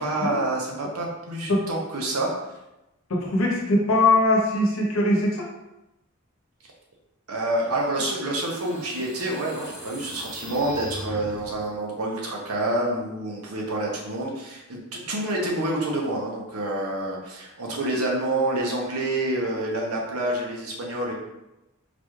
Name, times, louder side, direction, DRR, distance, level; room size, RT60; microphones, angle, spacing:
voice 1, 0.0-2.3 7.3-21.1, right 1 dB, 85° right, -1 dB, 0.8 m, -28 dB
voice 2, 3.1-5.4 17.9-18.0, left 2 dB, 70° left, -1 dB, 0.9 m, -21 dB
sound 1, 7.5-11.8, equal, 5° right, 0.6 m, -40 dB
3.9 x 2.4 x 3.1 m, 0.96 s
head